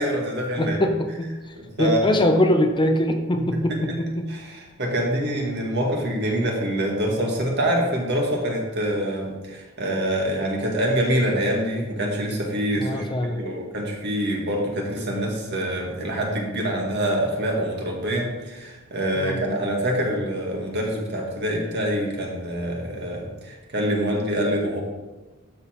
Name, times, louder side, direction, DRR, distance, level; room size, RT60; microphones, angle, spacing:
voice 1, 0.0-0.8 1.6-2.1 3.5-4.0 4.3-24.8, equal, 55° right, -1 dB, 1.9 m, -25 dB
voice 2, 0.6-1.3 1.8-4.3 12.8-13.4 19.2-19.4, left 1 dB, 20° left, 5 dB, 0.6 m, -22 dB
12.5 x 4.3 x 4.4 m, 1.2 s
head